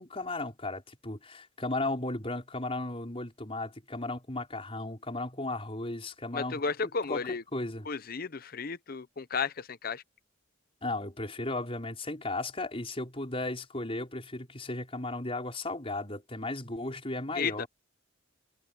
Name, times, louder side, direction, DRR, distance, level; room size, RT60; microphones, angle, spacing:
voice 1, 0.0-7.9 10.8-17.7, left 2 dB, 30° left, 5.2 m, -35 dB
voice 2, 6.3-7.4 7.9-10.0 17.4-17.6, left 5 dB, 50° left, 0.8 m, -33 dB
head